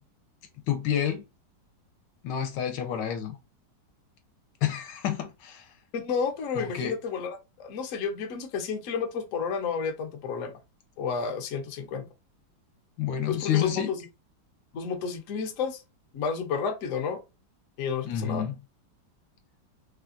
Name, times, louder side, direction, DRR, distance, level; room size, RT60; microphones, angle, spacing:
voice 1, 0.7-1.2 2.2-3.4 4.6-5.7 6.6-7.0 13.0-13.9 18.0-18.5, left 10 dB, 80° left, 1.2 m, -29 dB
voice 2, 5.9-10.5 11.0-12.1 13.3-14.0 14.7-15.8 16.1-17.2 17.8-18.4, left 6 dB, 65° left, 0.8 m, -31 dB
3.3 x 2.3 x 2.5 m
omnidirectional pair, 2.0 m